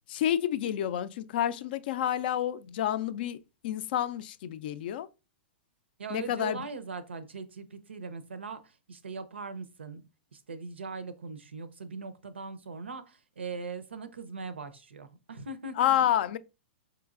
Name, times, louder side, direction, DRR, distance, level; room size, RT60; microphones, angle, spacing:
voice 1, 0.1-3.4 3.6-5.1 6.1-6.7 15.8-16.4, left 11 dB, 60° left, 0.3 m, -29 dB
voice 2, 6.0-10.0 10.3-15.9, right 4 dB, 90° right, 0.5 m, -40 dB
4.6 x 3.0 x 2.4 m
hypercardioid pair, 115°, 6 cm